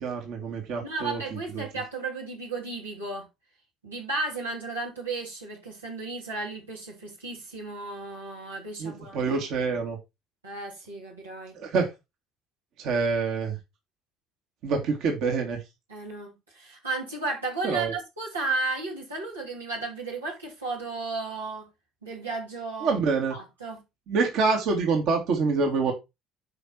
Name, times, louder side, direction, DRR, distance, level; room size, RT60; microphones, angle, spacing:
voice 1, 0.0-1.6 8.8-10.0 11.5-11.9 12.8-13.6 14.6-15.6 17.6-17.9 22.8-23.4 24.1-25.9, right 4 dB, 60° right, 2.4 m, -26 dB
voice 2, 0.8-3.3 3.8-9.7 10.4-11.6 15.9-21.7 22.0-23.0 23.3-23.8, right 3 dB, 90° right, 2.8 m, -34 dB
9.7 x 4.8 x 4.5 m
hypercardioid pair, 60°, 0 cm